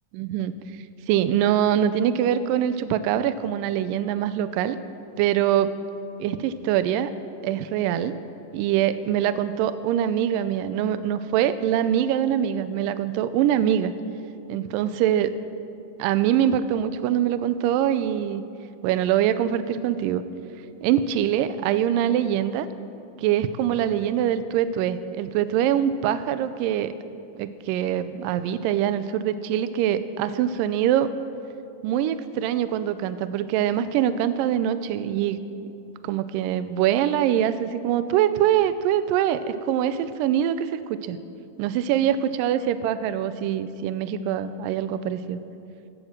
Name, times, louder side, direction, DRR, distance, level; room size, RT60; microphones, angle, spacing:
voice 1, 0.1-0.5 1.1-4.8 5.2-5.7 6.2-7.1 7.4-8.2 8.5-13.9 14.5-15.3 16.0-18.4 18.8-20.2 20.8-22.7 23.2-26.9 27.4-31.1 31.8-35.4 36.0-41.2 41.6-45.4, right 10 dB, 80° right, 12 dB, 2.2 m, -23 dB
19.5 x 9.1 x 7.5 m, 2.6 s
omnidirectional pair, 4.0 m